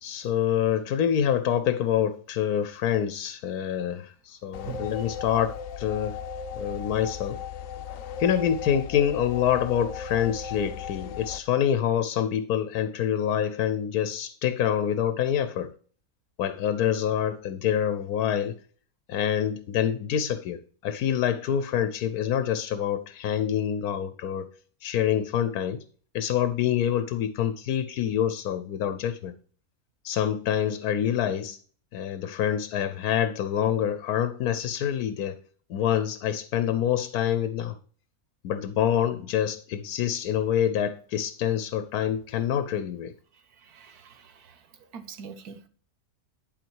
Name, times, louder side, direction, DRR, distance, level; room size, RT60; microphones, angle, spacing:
voice 1, 0.0-6.2 6.6-7.4 8.2-15.7 16.4-18.6 19.1-24.5 24.8-25.8 26.1-29.4 30.0-31.6 31.9-35.4 35.7-37.8 38.4-43.1, left 9 dB, 90° left, 1.2 m, -26 dB
sound 1, 4.5-11.4, left 7 dB, 70° left, 1.0 m, -37 dB
voice 2, 43.6-44.6 44.9-45.7, right 7 dB, 85° right, 1.5 m, -42 dB
11.0 x 4.5 x 4.6 m
omnidirectional pair, 1.6 m